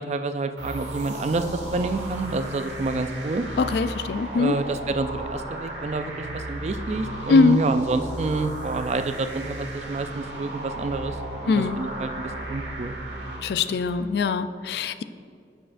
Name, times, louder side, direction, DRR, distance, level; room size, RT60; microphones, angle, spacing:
voice 1, 0.0-3.5 4.3-11.2 11.4-13.0, right 3 dB, 40° right, 10 dB, 0.3 m, -28 dB
sound 1, 0.6-14.1, right 1 dB, 90° right, 1.4 m, -35 dB
voice 2, 3.6-4.6 7.3-7.6 11.5-11.8 13.4-15.0, left 4 dB, 60° left, 12 dB, 0.3 m, -22 dB
10.0 x 6.6 x 2.5 m, 2.3 s
head